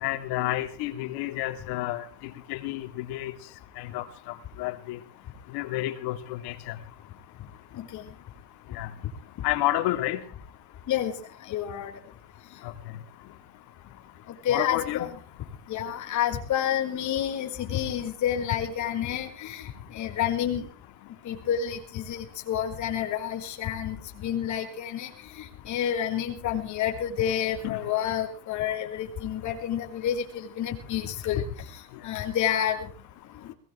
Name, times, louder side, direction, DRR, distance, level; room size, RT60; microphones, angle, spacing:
voice 1, 0.0-3.3 3.8-5.0 5.5-6.8 8.7-8.9 9.4-10.2 12.6-12.7 14.5-15.1 27.6-27.8, left 15 dB, 85° left, 7 dB, 2.8 m, -30 dB
voice 2, 11.5-11.9 14.4-15.1 15.7-19.7 19.9-20.6 21.2-24.0 24.2-25.1 25.7-31.4 32.0-32.8, left 10 dB, 50° left, 2 dB, 4.7 m, -29 dB
22.0 x 18.5 x 3.3 m, 0.40 s
cardioid pair, 150°, 38 cm